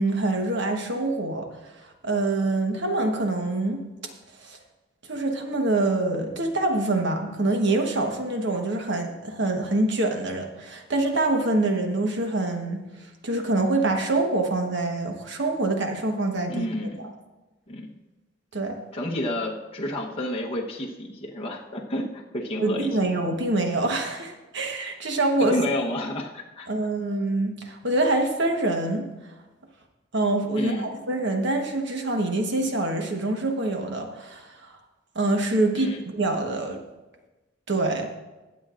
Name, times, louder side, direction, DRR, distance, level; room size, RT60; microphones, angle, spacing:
voice 1, 0.0-1.5 1.8-3.8 4.4-4.6 5.1-16.7 17.0-17.1 18.5-18.8 22.6-25.6 26.7-29.0 30.1-34.8 35.1-36.8 37.7-38.1, right 2 dB, 65° right, 4 dB, 1.2 m, -25 dB
voice 2, 16.5-17.1 17.7-17.9 18.9-23.0 25.4-26.7 30.5-30.9 35.7-36.0, left 1 dB, 30° left, -2 dB, 1.0 m, -30 dB
22.5 x 7.4 x 2.5 m, 1.1 s
head